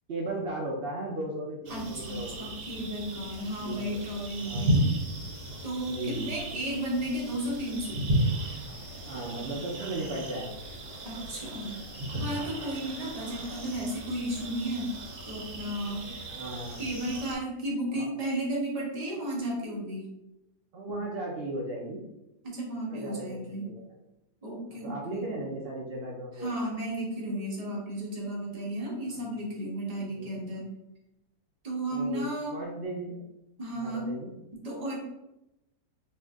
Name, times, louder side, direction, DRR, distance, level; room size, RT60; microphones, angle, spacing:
voice 1, 0.1-2.6 3.6-4.0 4.4-4.7 5.9-6.4 9.1-10.5 16.3-16.8 17.9-18.1 20.7-22.0 22.9-23.9 24.8-26.5 29.1-29.2 30.1-30.5 31.9-33.2 33.7-34.3, right 2 dB, 85° right, -3 dB, 0.5 m, -36 dB
voice 2, 1.7-4.8 5.6-8.1 11.0-11.8 12.2-14.9 15.2-16.1 16.8-20.1 22.4-23.7 24.4-25.2 26.4-30.7 31.6-32.6 33.6-34.1 34.6-35.0, right 1 dB, 35° right, -3 dB, 0.7 m, -34 dB
sound 1, 1.7-17.4, right 1 dB, 60° right, 1.0 m, -34 dB
2.7 x 2.5 x 3.4 m, 0.90 s
omnidirectional pair, 1.8 m